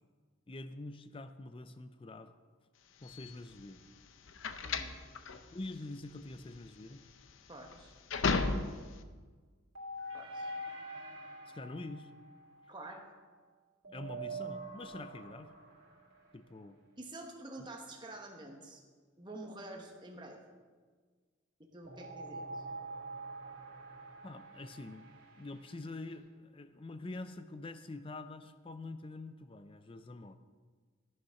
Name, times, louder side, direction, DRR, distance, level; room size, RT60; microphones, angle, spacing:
voice 1, 0.5-2.3 3.0-3.9 5.5-7.0 11.5-12.1 13.9-15.5 16.3-16.8 24.2-25.1 25.4-30.4, left 2 dB, 25° left, 11 dB, 0.4 m, -45 dB
sound 1, 3.0-9.0, left 4 dB, 70° left, 0.7 m, -35 dB
voice 2, 4.6-4.9 7.5-7.9 10.1-10.5 12.7-13.0 17.0-18.8 19.2-20.4 21.6-22.6, right 2 dB, 20° right, 1 dB, 1.2 m, -48 dB
sound 2, 9.7-13.4 13.8-16.3 21.8-26.1, right 2 dB, 80° right, 2.9 m, -45 dB
13.0 x 6.6 x 5.7 m, 1.5 s
head